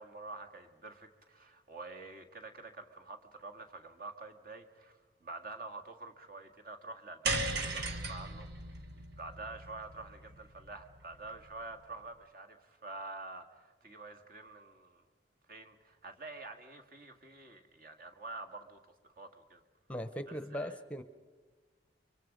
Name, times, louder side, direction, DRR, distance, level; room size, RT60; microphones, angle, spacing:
voice 1, 0.0-8.5 8.9-15.0 15.5-19.6 20.3-20.8, right 3 dB, 55° right, 6 dB, 1.9 m, -48 dB
sound 1, 7.2-11.6, right 2 dB, 70° right, 1.7 m, -38 dB
voice 2, 19.9-21.0, equal, 5° left, 10 dB, 0.8 m, -39 dB
30.0 x 24.5 x 5.2 m, 1.3 s
head